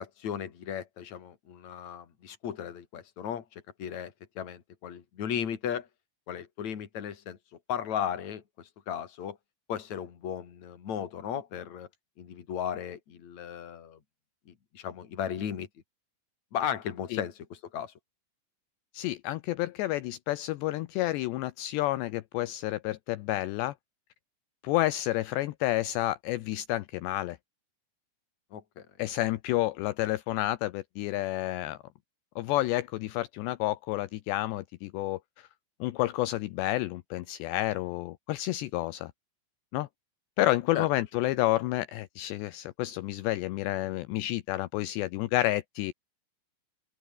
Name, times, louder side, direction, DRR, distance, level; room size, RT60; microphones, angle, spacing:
voice 1, 0.0-5.9 6.3-7.4 7.7-9.4 9.7-11.9 12.2-14.0 14.5-15.7 16.5-17.9 28.5-28.8 40.7-40.9, left 9 dB, 40° left, 3.3 m, -36 dB
voice 2, 18.9-23.7 24.6-27.4 29.0-31.8 32.4-35.5 35.8-39.1 39.7-39.9 40.4-45.9, left 16 dB, 80° left, 2.6 m, -30 dB
open air
omnidirectional pair, 5.9 m